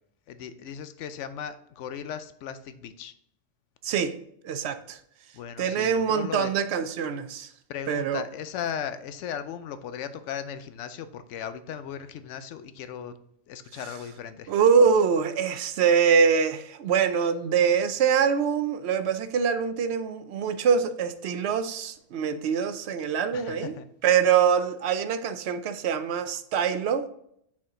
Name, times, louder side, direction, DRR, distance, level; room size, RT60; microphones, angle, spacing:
voice 1, 0.3-3.1 5.3-6.5 7.7-13.1 13.5-14.5 23.3-23.8, left 8 dB, 70° left, 0.9 m, -37 dB
voice 2, 3.8-4.2 4.4-5.0 5.6-7.5 7.9-8.2 13.7-13.8 14.5-23.8 24.0-27.1, right 6 dB, 65° right, 0.7 m, -24 dB
6.0 x 4.4 x 3.7 m
omnidirectional pair, 1.3 m